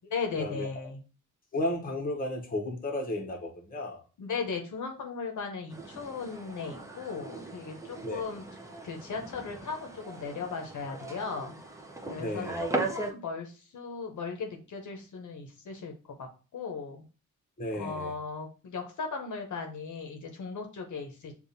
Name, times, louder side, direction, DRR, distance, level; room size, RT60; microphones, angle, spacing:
voice 1, 0.1-1.0 4.2-8.5 8.8-11.6 12.1-15.9 16.2-17.0 17.7-21.3, left 5 dB, 65° left, 3 dB, 0.8 m, -37 dB
voice 2, 1.5-4.0 8.0-8.3 12.2-12.6 17.6-18.1, left 1 dB, 25° left, 0 dB, 0.9 m, -33 dB
sound 1, 5.7-13.1, right 2 dB, 10° right, 0.5 m, -38 dB
6.7 x 2.4 x 2.6 m, 0.35 s
wide cardioid pair, 130°, 32 cm